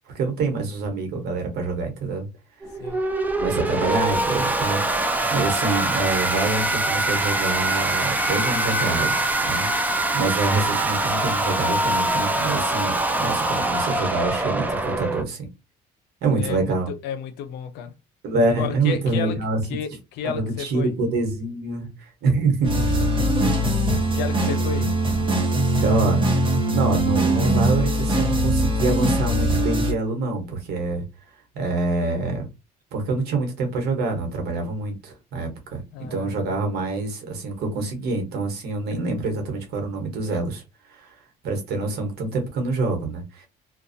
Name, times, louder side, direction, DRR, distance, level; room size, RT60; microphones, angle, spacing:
voice 1, 0.1-2.3 3.3-9.7 10.1-15.5 16.2-16.9 18.2-19.6 20.2-22.9 25.8-26.2 26.7-31.0 31.5-32.5 32.9-40.6 40.9-41.1 41.4-43.5, right 3 dB, 70° right, 1.1 m, -26 dB
sound 1, 2.6-15.2, right 2 dB, 10° right, 0.4 m, -23 dB
voice 2, 16.2-17.9 18.3-19.4 19.7-20.9 22.9-23.1 23.6-23.7 24.1-24.9 35.9-36.5, left 7 dB, 85° left, 0.6 m, -32 dB
sound 2, 22.6-29.9, right 1 dB, 30° right, 0.9 m, -21 dB
2.5 x 2.2 x 2.6 m
cardioid pair, 110°, 17 cm